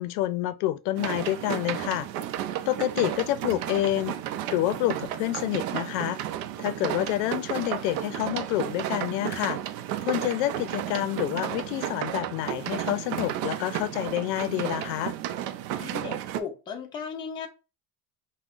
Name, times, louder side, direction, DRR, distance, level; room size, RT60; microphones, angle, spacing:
voice 1, 0.0-2.1 2.7-4.2 4.5-6.2 6.6-9.6 10.0-15.1, left 14 dB, 85° left, 0.5 m, -28 dB
sound 1, 1.0-16.4, right 11 dB, 85° right, 0.6 m, -33 dB
voice 2, 15.7-17.5, left 6 dB, 10° left, 0.3 m, -36 dB
5.4 x 2.1 x 2.4 m
cardioid pair, 145°, 47 cm